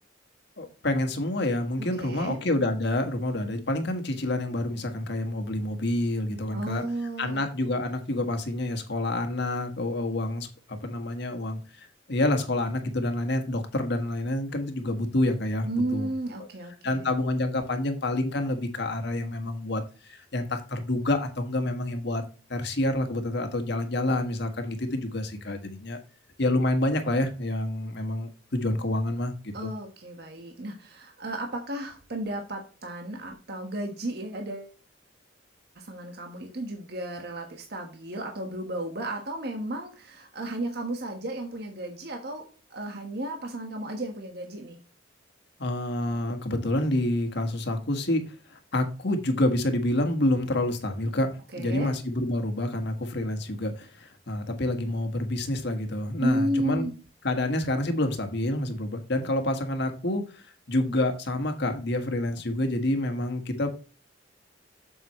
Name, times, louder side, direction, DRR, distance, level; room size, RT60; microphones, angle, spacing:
voice 1, 0.6-6.8 7.2-16.1 16.8-22.2 22.5-26.0 26.4-29.7 45.6-56.9 57.2-63.7, left 1 dB, 65° left, 5 dB, 1.7 m, -28 dB
voice 2, 1.8-2.4 6.5-7.4 15.6-17.1 29.5-34.7 35.7-42.4 42.7-44.8 51.5-51.9 56.2-56.9, right 1 dB, 60° right, 2 dB, 1.5 m, -33 dB
7.7 x 7.4 x 3.1 m, 0.35 s
head